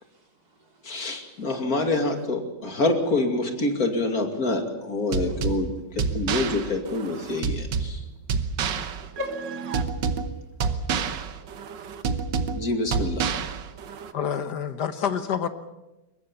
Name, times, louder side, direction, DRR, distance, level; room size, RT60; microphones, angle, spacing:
voice 1, 0.0-1.5 5.3-5.4 7.8-8.0 8.8-9.7 11.3-11.5 15.0-15.2, left 1 dB, 60° right, 4.7 m, -40 dB
voice 2, 0.8-5.7 5.9-8.0 12.5-13.2, left 2 dB, 55° left, 2.9 m, -26 dB
sound 1, 5.1-14.1, right 5 dB, 90° right, 1.8 m, -29 dB
voice 3, 14.1-15.5, left 8 dB, 70° left, 1.7 m, -27 dB
23.0 x 21.0 x 7.1 m
omnidirectional pair, 1.9 m